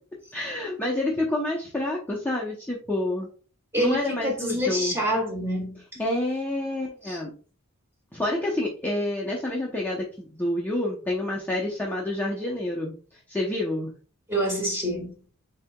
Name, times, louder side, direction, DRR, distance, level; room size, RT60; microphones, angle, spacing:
voice 1, 0.3-3.3 3.8-5.0 6.0-7.3 8.1-13.9, left 1 dB, 10° left, 0.7 m, -28 dB
voice 2, 3.7-5.8 7.0-7.2 14.3-15.1, equal, 10° right, 2.1 m, -27 dB
8.0 x 2.8 x 2.2 m
head